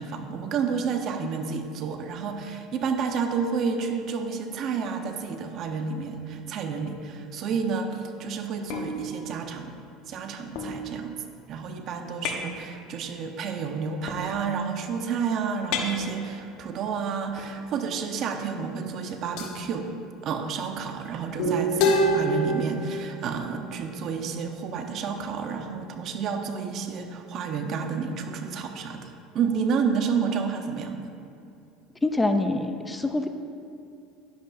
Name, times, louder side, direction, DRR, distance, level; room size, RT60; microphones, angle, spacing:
voice 1, 0.0-9.7 10.1-11.2 11.5-19.9 20.2-29.1 29.3-31.0, right 6 dB, 55° right, 5 dB, 1.0 m, -30 dB
sound 1, 8.7-9.7 10.5-11.4 12.2-12.6 14.1-14.7 15.7-16.6 17.4-17.6 18.8-18.9 19.4-19.7 21.8-24.6, left 1 dB, 70° left, 1.2 m, -30 dB
sound 2, 21.4-24.9, right 3 dB, 85° left, 2.5 m, -32 dB
voice 2, 32.0-33.3, left 2 dB, 15° left, 7 dB, 0.5 m, -25 dB
11.5 x 10.5 x 2.7 m, 2.6 s
supercardioid pair, 100°, 0 cm